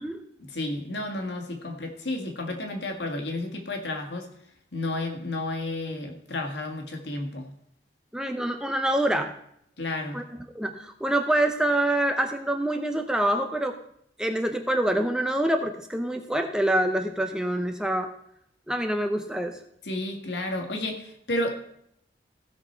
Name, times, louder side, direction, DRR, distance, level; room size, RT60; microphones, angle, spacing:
voice 1, 0.4-4.3 4.7-7.5 9.8-10.2 19.8-21.6, left 2 dB, 65° left, 3 dB, 1.8 m, -31 dB
voice 2, 8.1-9.3 10.1-10.2 10.5-13.7 14.2-18.1 18.7-19.6, right 1 dB, 5° right, 6 dB, 0.6 m, -26 dB
16.0 x 6.0 x 4.5 m, 0.72 s
head